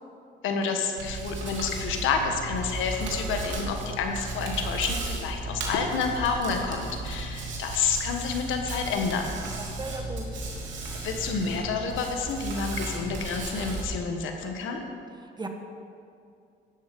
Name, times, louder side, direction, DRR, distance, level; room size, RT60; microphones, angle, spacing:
voice 1, 0.4-9.4 11.0-14.8, left 5 dB, 90° left, 4 dB, 1.5 m, -29 dB
Hands, 1.0-13.8, right 2 dB, 70° right, 3.0 m, -35 dB
voice 2, 9.6-10.3 15.2-15.5, right 2 dB, 20° right, 5 dB, 1.4 m, -37 dB
13.0 x 11.0 x 5.3 m, 2.4 s
cardioid pair, 90°, 20 cm